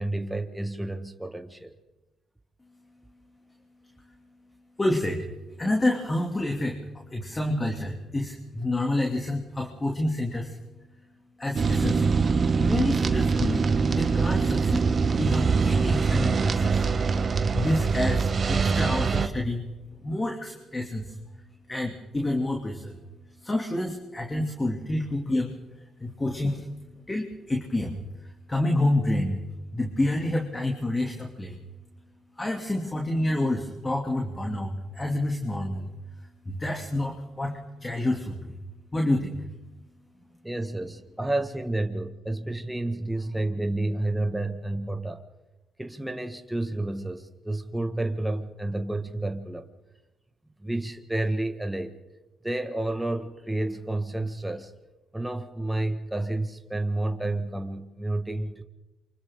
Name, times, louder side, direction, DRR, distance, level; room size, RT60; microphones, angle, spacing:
voice 1, 0.0-1.7 40.4-45.2 45.8-49.7 50.6-52.0 52.4-54.7 55.1-58.6, right 2 dB, 5° right, 6 dB, 1.6 m, -30 dB
voice 2, 4.8-5.3 5.6-6.8 7.1-10.6 11.4-12.2 12.6-14.9 15.2-16.8 17.5-19.7 20.0-21.1 21.7-23.0 23.4-25.5 26.0-26.7 27.1-28.0 28.5-29.4 29.7-31.6 32.4-35.9 36.5-38.6 38.9-39.4, left 1 dB, 25° left, 1 dB, 2.7 m, -28 dB
sound 1, 11.5-19.3, right 5 dB, 45° right, 1.3 m, -23 dB
28.0 x 25.0 x 3.8 m, 1.1 s
supercardioid pair, 65°, 0 cm